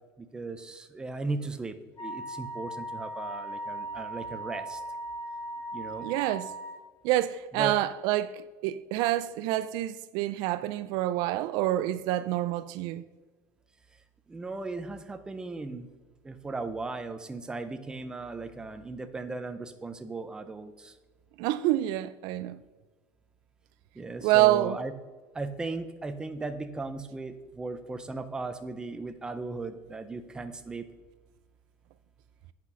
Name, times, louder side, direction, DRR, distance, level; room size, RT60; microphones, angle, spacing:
voice 1, 0.2-4.8 5.7-6.1 7.5-7.8 14.3-15.9 16.2-21.0 23.9-24.9 25.3-30.9, right 3 dB, 10° right, 0.5 m, -37 dB
Wind instrument woodwind instrument, 2.0-6.8, right 1 dB, 35° left, 3.0 m, -38 dB
voice 2, 6.0-6.5 7.0-13.0 21.4-22.6 24.2-24.8, right 15 dB, 60° right, 0.3 m, -27 dB
8.5 x 5.9 x 5.4 m
cardioid pair, 155°, 8 cm